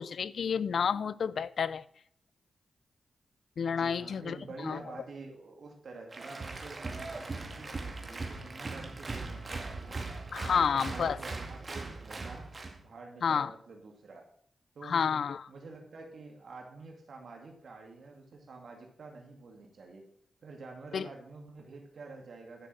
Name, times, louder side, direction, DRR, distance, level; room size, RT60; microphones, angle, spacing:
voice 1, 0.0-1.8 3.6-4.8 10.3-11.2 13.2-13.5 14.8-15.5 20.9-21.1, left 6 dB, 75° left, 0.4 m, -30 dB
voice 2, 3.8-10.0 10.4-12.5 12.8-14.3 14.8-15.2 15.5-20.1 20.4-22.7, right 3 dB, 70° right, 2.3 m, -48 dB
Applause, 6.1-12.8, right 3 dB, 45° right, 2.2 m, -39 dB
Wind instrument woodwind instrument, 7.1-11.0, equal, 10° right, 3.3 m, -58 dB
11.0 x 6.4 x 6.1 m
cardioid pair, 65°, 0 cm